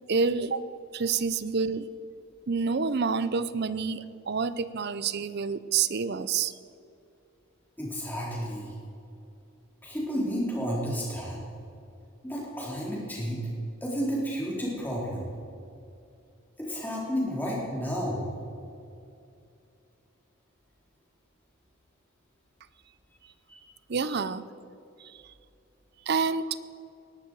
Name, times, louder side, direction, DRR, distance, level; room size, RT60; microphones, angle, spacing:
voice 1, 0.1-0.6 0.9-1.9 2.5-6.5 23.9-24.4 26.1-26.6, right 5 dB, 50° right, 15 dB, 0.5 m, -28 dB
voice 2, 7.8-8.7 9.8-11.4 12.2-13.5 13.8-15.3 16.6-18.3 23.5-23.6, equal, 10° left, -5 dB, 3.7 m, -31 dB
19.0 x 12.0 x 4.7 m, 2.5 s
head